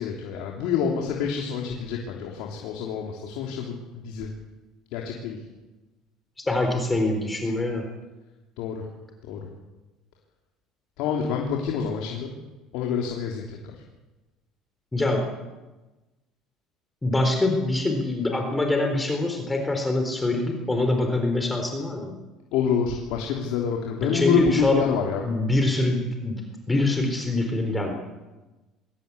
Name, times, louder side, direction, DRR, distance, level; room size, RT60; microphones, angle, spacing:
voice 1, 0.0-4.3 4.9-5.4 8.6-8.9 9.2-9.5 11.0-12.3 12.7-13.6 22.5-25.2, left 7 dB, 80° left, 0 dB, 3.3 m, -27 dB
voice 2, 6.4-7.9 14.9-15.3 17.0-22.1 24.0-24.8 25.2-27.9, left 2 dB, 15° left, 3 dB, 4.0 m, -24 dB
22.5 x 17.5 x 8.4 m, 1.1 s
supercardioid pair, 110°, 0 cm